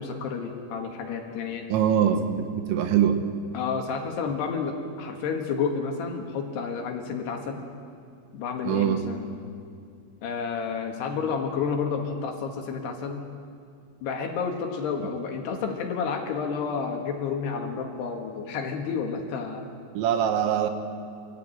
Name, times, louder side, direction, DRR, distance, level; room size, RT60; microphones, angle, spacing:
voice 1, 0.0-1.7 3.5-7.6 8.3-9.3 10.2-13.3 14.0-19.7, left 5 dB, 70° left, 3 dB, 3.6 m, -30 dB
voice 2, 1.7-3.2 8.6-9.0 20.0-20.7, right 9 dB, 90° right, 7 dB, 3.5 m, -23 dB
24.5 x 15.0 x 9.1 m, 2.3 s
omnidirectional pair, 5.2 m